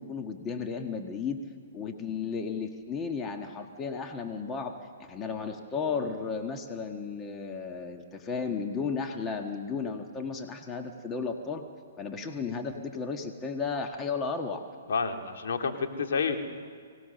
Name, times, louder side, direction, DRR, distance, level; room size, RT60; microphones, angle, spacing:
voice 1, 0.0-1.4 1.7-4.7 5.0-11.6 12.0-14.6, left 5 dB, 20° left, 4 dB, 1.4 m, -34 dB
voice 2, 14.9-16.4, left 5 dB, 70° left, 4 dB, 2.1 m, -29 dB
24.0 x 18.0 x 6.7 m, 2.2 s
hypercardioid pair, 135°, 0 cm